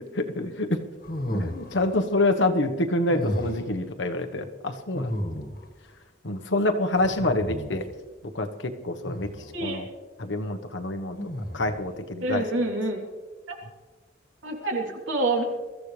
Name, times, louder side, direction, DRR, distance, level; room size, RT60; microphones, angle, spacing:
voice 1, 0.1-0.8 1.3-5.2 6.2-7.8 8.3-9.3 9.6-9.9 10.2-12.4, left 2 dB, 80° left, 6 dB, 1.3 m, -27 dB
sound 1, 1.0-2.0 3.1-3.8 4.9-5.8 6.9-8.0 9.0-9.6 11.2-11.9, equal, 50° left, 1.7 m, -33 dB
voice 2, 9.5-9.8 12.2-13.0 13.5-13.6 14.4-15.4, right 2 dB, 90° right, 0 dB, 3.4 m, -27 dB
23.5 x 14.5 x 3.3 m, 1.3 s
head